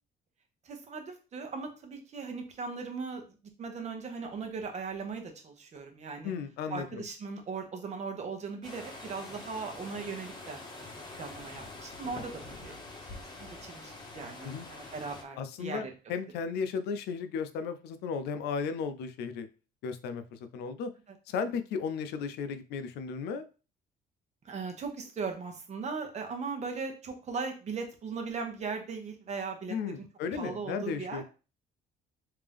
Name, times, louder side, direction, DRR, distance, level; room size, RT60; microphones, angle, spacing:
voice 1, 0.6-3.2 3.6-6.3 6.7-10.6 11.2-12.7 13.1-15.9 24.4-30.0 30.3-31.2, right 4 dB, 40° right, 4 dB, 1.0 m, -38 dB
voice 2, 6.2-7.1 14.4-14.7 15.4-19.5 19.8-20.9 21.3-23.4 29.7-31.2, left 6 dB, 75° left, 10 dB, 0.5 m, -35 dB
sound 1, 8.6-15.2, left 2 dB, 25° left, 0.9 m, -45 dB
3.4 x 2.8 x 3.5 m, 0.34 s
cardioid pair, 110°, 17 cm